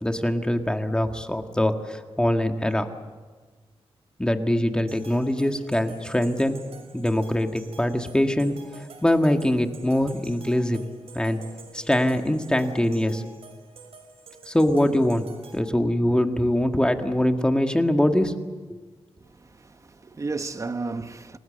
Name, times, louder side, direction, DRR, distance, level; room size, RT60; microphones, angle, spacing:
voice 1, 0.0-2.9 4.2-6.6 6.9-10.8 11.1-11.4 11.7-13.2 14.5-15.3 15.5-18.3 18.7-18.8, left 1 dB, 10° left, 1.8 m, -23 dB
sound 1, 4.9-15.6, right 4 dB, 80° right, 5.4 m, -48 dB
voice 2, 19.2-21.4, right 3 dB, 30° right, 1.2 m, -33 dB
28.5 x 19.0 x 7.9 m
wide cardioid pair, 115°, 10 cm